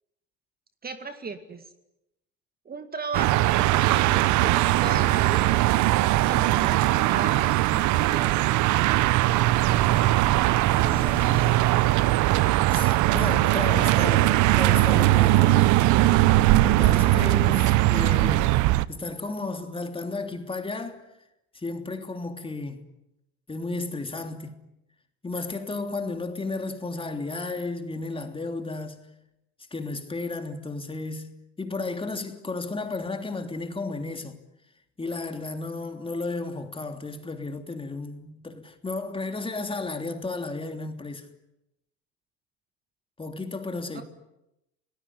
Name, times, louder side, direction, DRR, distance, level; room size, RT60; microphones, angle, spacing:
voice 1, 0.8-1.7 2.7-5.6 6.3-8.5 43.9-44.0, right 4 dB, 25° right, 2.2 m, -36 dB
sound 1, 3.1-18.8, right 16 dB, 50° right, 1.0 m, -20 dB
voice 2, 10.7-11.8 12.7-15.8 16.6-18.5 18.9-21.0 21.5-22.8 23.5-24.6 25.2-29.0 29.7-34.4 35.0-41.3 43.2-44.0, left 3 dB, 15° left, 3.3 m, -33 dB
29.0 x 19.5 x 9.9 m
hypercardioid pair, 90°, 37 cm